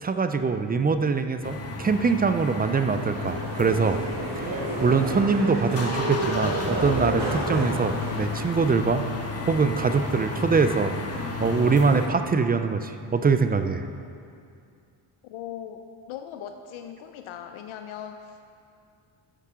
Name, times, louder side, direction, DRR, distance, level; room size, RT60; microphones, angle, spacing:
voice 1, 0.0-4.0 4.4-9.0 9.5-11.0 11.4-13.9, right 5 dB, 20° right, 9 dB, 0.4 m, -23 dB
sound 1, 1.4-5.2 5.5-12.1, left 3 dB, 30° left, 1.2 m, -33 dB
sound 2, 2.2-8.2, right 2 dB, 50° right, 2.0 m, -31 dB
voice 2, 15.2-15.8 16.1-18.5, left 9 dB, 70° left, 6 dB, 0.6 m, -39 dB
11.5 x 6.7 x 3.7 m, 2.4 s
supercardioid pair, 75°, 50 cm